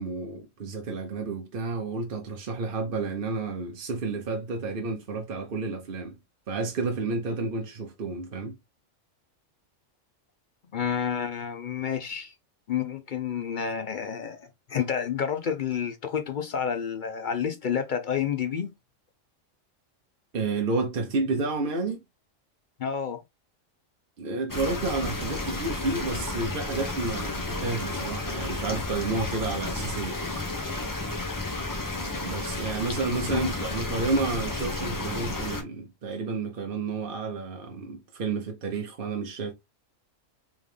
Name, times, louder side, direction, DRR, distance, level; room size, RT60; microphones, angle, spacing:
voice 1, 0.0-6.2 6.5-8.6 20.3-22.0 24.2-30.2 32.2-39.5, right 3 dB, 50° right, 0.9 m, -30 dB
voice 2, 10.7-12.3 12.7-18.7 22.8-23.2 33.1-33.5, left 7 dB, 60° left, 0.5 m, -30 dB
sound 1, 24.5-35.6, left 2 dB, 20° left, 0.6 m, -32 dB
3.5 x 3.4 x 3.2 m
omnidirectional pair, 1.3 m